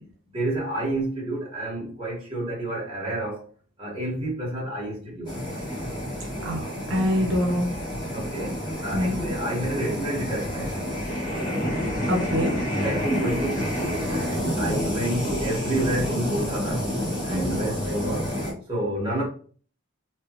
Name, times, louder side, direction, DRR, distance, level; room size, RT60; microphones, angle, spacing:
voice 1, 0.3-3.4 3.8-5.3 8.1-10.7 12.6-16.8 17.2-18.3 18.7-19.2, right 1 dB, 25° right, 1.5 m, -29 dB
sound 1, 5.3-18.5, equal, 20° left, 1.4 m, -29 dB
voice 2, 6.4-7.7 8.9-9.2 12.1-12.5 17.3-17.6, left 1 dB, 70° right, 0.8 m, -25 dB
3.3 x 3.0 x 3.0 m
head